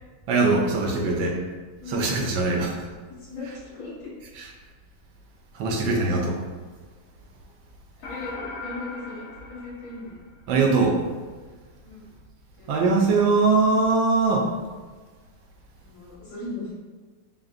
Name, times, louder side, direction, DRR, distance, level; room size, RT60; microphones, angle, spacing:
voice 1, 0.3-1.3 1.9-2.8 4.4-4.5 5.5-6.4 10.5-11.0 12.7-14.5, right 3 dB, 80° right, 1 dB, 1.4 m, -21 dB
voice 2, 0.9-1.4 1.8-2.2 2.5-2.8 3.2-4.1 8.0-10.2 11.8-12.0 12.6-12.7 15.8-16.7, left 2 dB, 45° left, -7 dB, 1.8 m, -38 dB
sound 1, 8.0-10.7, left 3 dB, 65° left, 0.8 m, -39 dB
3.8 x 3.6 x 2.4 m, 1.4 s
omnidirectional pair, 2.0 m